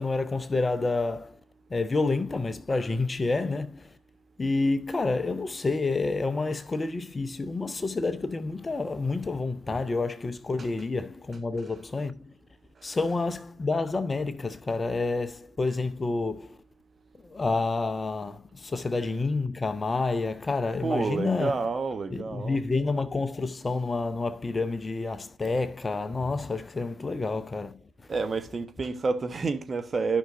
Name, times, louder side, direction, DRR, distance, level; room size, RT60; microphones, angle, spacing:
voice 1, 0.0-1.4 1.7-4.0 4.4-12.3 12.8-16.6 17.2-21.6 22.1-27.8, left 3 dB, 25° left, 0.7 m, -29 dB
voice 2, 20.8-22.6 28.1-30.2, right 4 dB, 35° right, 1.1 m, -29 dB
12.5 x 5.9 x 2.5 m
figure-of-eight pair, 50°, 0 cm